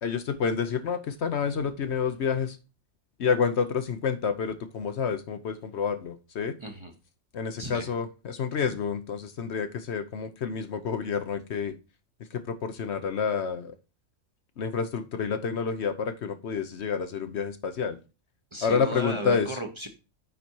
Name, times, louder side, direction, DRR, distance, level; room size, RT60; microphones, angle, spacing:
voice 1, 0.0-2.6 3.2-6.5 7.3-11.7 12.3-13.7 14.6-18.0 18.6-19.5, left 6 dB, 60° left, 9 dB, 0.9 m, -29 dB
voice 2, 6.6-6.9 7.6-7.9 18.5-19.9, right 1 dB, 25° right, 4 dB, 0.9 m, -34 dB
9.2 x 4.2 x 4.5 m, 0.31 s
omnidirectional pair, 1.4 m